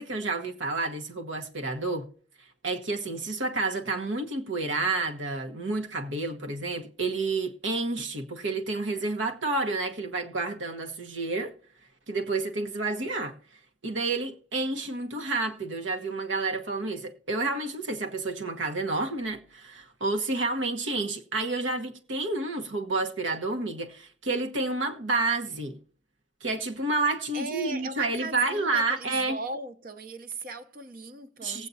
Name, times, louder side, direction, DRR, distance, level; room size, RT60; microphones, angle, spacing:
voice 1, 0.0-2.1 2.6-11.6 12.1-13.4 13.8-25.8 26.4-29.4 31.4-31.7, right 3 dB, 80° right, 1.2 m, -30 dB
voice 2, 27.3-31.7, right 3 dB, 50° right, 0.8 m, -38 dB
19.0 x 8.2 x 2.7 m
head